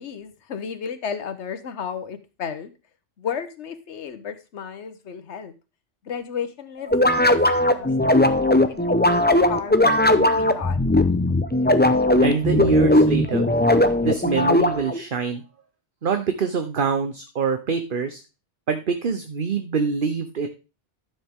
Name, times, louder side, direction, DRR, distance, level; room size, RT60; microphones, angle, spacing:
voice 1, 0.0-2.7 3.2-5.5 6.0-8.3 8.7-10.8, left 7 dB, 75° left, 10 dB, 1.3 m, -33 dB
sound 1, 6.9-15.0, left 1 dB, 10° left, 0.6 m, -18 dB
voice 2, 12.2-13.5 14.0-15.4 16.0-18.2 18.7-20.5, right 5 dB, 50° right, 8 dB, 1.0 m, -25 dB
12.5 x 7.2 x 3.6 m, 0.30 s
omnidirectional pair, 1.2 m